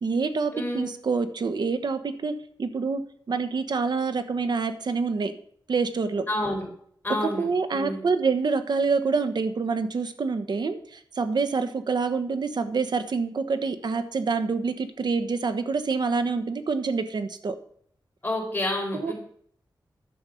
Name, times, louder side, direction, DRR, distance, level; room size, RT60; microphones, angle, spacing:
voice 1, 0.0-2.3 2.6-3.0 3.3-5.4 5.7-6.3 7.2-17.5 18.9-19.1, right 4 dB, 65° right, 10 dB, 1.1 m, -26 dB
voice 2, 0.5-0.8 6.3-6.6 7.0-8.0 18.2-19.1, left 1 dB, 20° left, -1 dB, 4.5 m, -29 dB
11.0 x 7.2 x 6.4 m, 0.62 s
wide cardioid pair, 145°, 8 cm